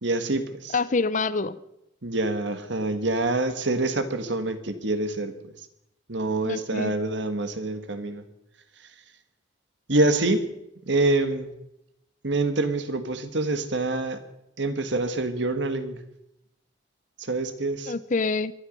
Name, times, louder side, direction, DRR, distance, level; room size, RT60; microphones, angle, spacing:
voice 1, 0.0-0.7 2.0-5.3 6.1-8.2 9.9-10.5 10.8-11.5 12.2-14.2 14.6-16.0 17.2-17.9, right 2 dB, 65° right, 10 dB, 1.7 m, -26 dB
voice 2, 0.7-1.6 6.4-6.9 17.9-18.5, left 4 dB, 40° left, 17 dB, 0.6 m, -26 dB
22.5 x 12.0 x 5.3 m, 0.84 s
head